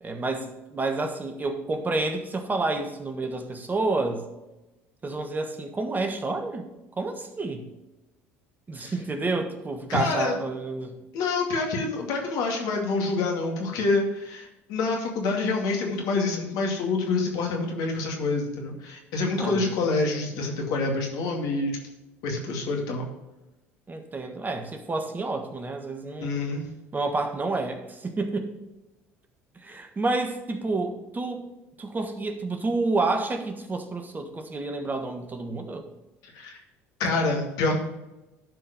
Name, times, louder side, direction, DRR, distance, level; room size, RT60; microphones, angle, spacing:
voice 1, 0.0-4.3 5.0-6.7 7.0-7.7 8.7-11.0 19.4-19.7 23.9-26.3 26.9-28.5 29.6-31.4 31.8-35.9, right 3 dB, 25° right, 6 dB, 1.5 m, -29 dB
voice 2, 9.9-10.3 11.1-21.8 22.2-23.0 26.2-26.7 36.3-36.6 37.0-37.7, left 3 dB, 65° left, 1 dB, 2.3 m, -27 dB
12.5 x 4.7 x 5.3 m, 1.0 s
hypercardioid pair, 70°, 7 cm